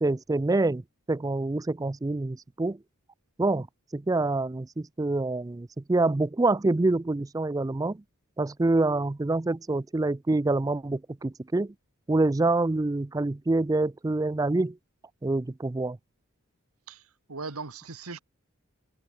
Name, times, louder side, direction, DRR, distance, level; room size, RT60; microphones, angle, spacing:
voice 1, 0.0-0.8 1.1-2.8 3.4-3.7 3.9-8.0 8.4-11.7 12.1-14.8 15.2-16.0, right 2 dB, 15° right, 0.3 m, -26 dB
voice 2, 16.9-18.2, right 4 dB, 90° right, 1.9 m, -39 dB
head